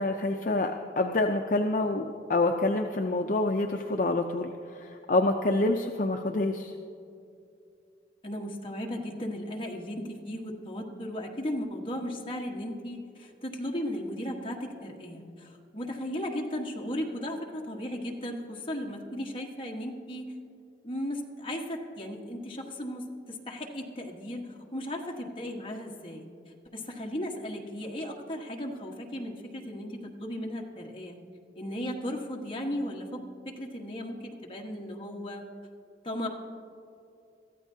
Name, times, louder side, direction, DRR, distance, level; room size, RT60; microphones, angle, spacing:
voice 1, 0.0-6.7, left 2 dB, 45° left, 4 dB, 0.5 m, -27 dB
voice 2, 8.2-20.3 20.8-26.3 26.7-31.2 31.6-35.4 36.0-36.3, equal, 30° left, 0 dB, 1.4 m, -36 dB
22.5 x 14.0 x 2.8 m, 2.6 s
head